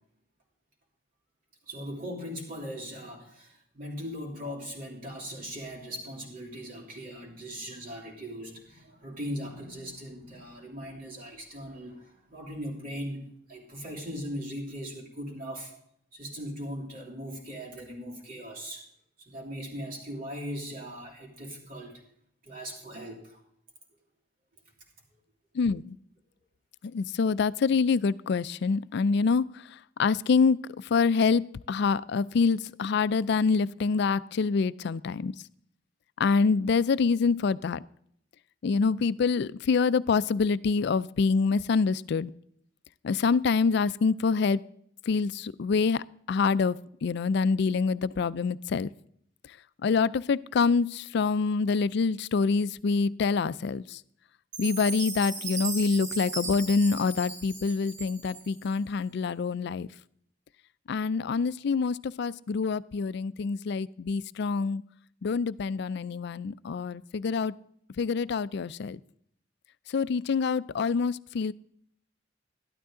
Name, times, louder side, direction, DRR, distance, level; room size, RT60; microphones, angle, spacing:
voice 1, 1.7-15.7 16.1-18.9 19.2-22.0 22.4-23.4, equal, 50° right, -2 dB, 3.0 m, -39 dB
voice 2, 25.5-26.0 26.8-35.3 36.2-37.8 38.6-42.3 43.0-44.6 45.1-48.9 49.5-49.6 49.8-54.0 54.6-59.9 60.9-64.8 65.2-67.5 68.0-69.0 69.9-71.5, left 5 dB, 60° left, 19 dB, 0.4 m, -26 dB
Chime, 54.5-58.7, right 3 dB, 65° right, 2.3 m, -37 dB
12.5 x 12.0 x 3.7 m, 0.68 s
head